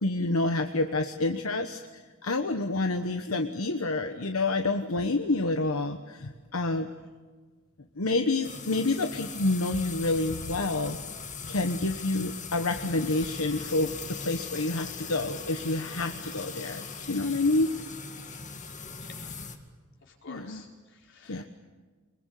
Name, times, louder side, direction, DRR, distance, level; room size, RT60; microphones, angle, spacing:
voice 1, 0.0-1.8 2.2-6.9 8.0-11.0 11.4-17.7 20.3-20.6 21.3-21.4, left 2 dB, 85° left, 6 dB, 1.2 m, -28 dB
sound 1, 8.4-19.6, left 5 dB, 35° left, 2.1 m, -40 dB
voice 2, 19.0-19.3 20.1-21.4, left 4 dB, 60° left, 0 dB, 4.8 m, -51 dB
25.0 x 22.0 x 8.4 m, 1.4 s
head